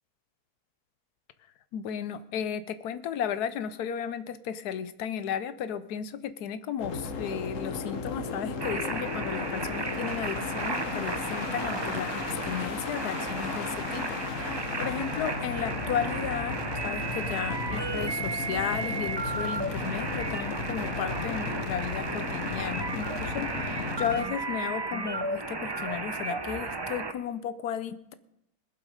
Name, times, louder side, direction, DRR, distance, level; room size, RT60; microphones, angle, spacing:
voice 1, 1.7-28.1, left 8 dB, 85° left, 13 dB, 1.3 m, -34 dB
sound 1, 6.8-24.2, left 4 dB, 60° left, 1.5 m, -35 dB
sound 2, 8.6-27.1, right 3 dB, 30° right, 0.4 m, -34 dB
21.0 x 7.4 x 5.0 m, 0.81 s
omnidirectional pair, 1.6 m